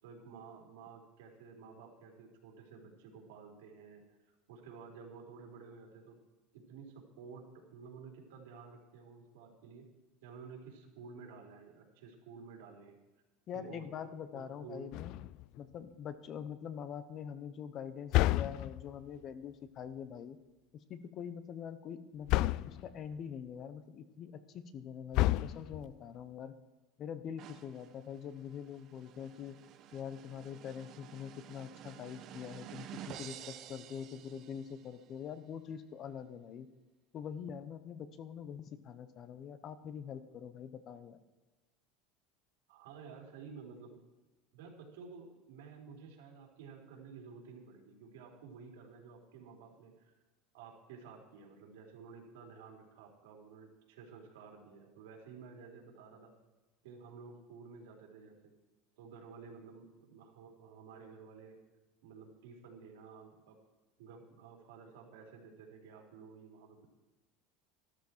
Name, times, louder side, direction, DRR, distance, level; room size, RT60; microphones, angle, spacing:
voice 1, 0.0-4.0 4.5-6.2 6.5-9.9 10.2-13.0 13.5-13.9 14.3-14.9 42.7-44.0 44.5-50.1 50.5-56.3 56.8-58.5 59.0-61.6 62.0-63.6 64.0-66.9, right 5 dB, 85° right, 1 dB, 3.8 m, -52 dB
voice 2, 13.5-15.2 15.6-20.4 20.7-26.6 27.0-29.6 29.9-36.7 37.1-41.2, left 8 dB, 35° left, 13 dB, 1.0 m, -44 dB
sound 1, 14.9-15.6 18.1-19.0 22.3-22.9 25.1-26.0, left 17 dB, 55° left, 0.3 m, -30 dB
sound 2, 27.4-35.0, right 11 dB, 40° right, 0.9 m, -51 dB
13.5 x 13.0 x 4.6 m, 1.1 s
supercardioid pair, 150°, 0 cm